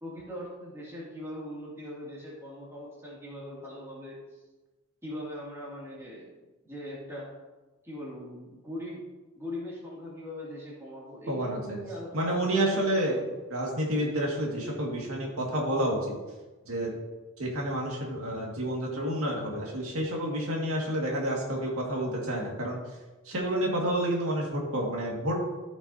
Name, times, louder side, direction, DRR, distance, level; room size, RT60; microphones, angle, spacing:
voice 1, 0.0-4.4 5.0-6.3 6.6-7.3 7.8-9.1 9.4-13.3, left 1 dB, 10° right, -6 dB, 2.3 m, -41 dB
voice 2, 11.3-11.8 12.1-13.2 13.5-16.2 16.7-16.9 17.4-22.8 23.3-25.4, right 1 dB, 80° right, -1 dB, 1.9 m, -29 dB
14.0 x 6.1 x 2.7 m, 1.2 s
head